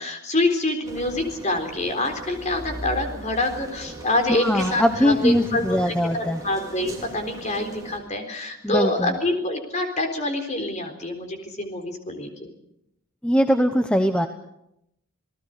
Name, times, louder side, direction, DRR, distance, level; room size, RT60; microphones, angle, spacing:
voice 1, 0.0-12.5, left 2 dB, 35° left, 6 dB, 3.9 m, -26 dB
sound 1, 0.8-8.0, right 1 dB, 15° right, 4.8 m, -39 dB
voice 2, 4.3-6.4 8.6-9.2 13.2-14.3, equal, 5° left, 6 dB, 1.0 m, -21 dB
28.5 x 18.5 x 6.7 m, 0.81 s
head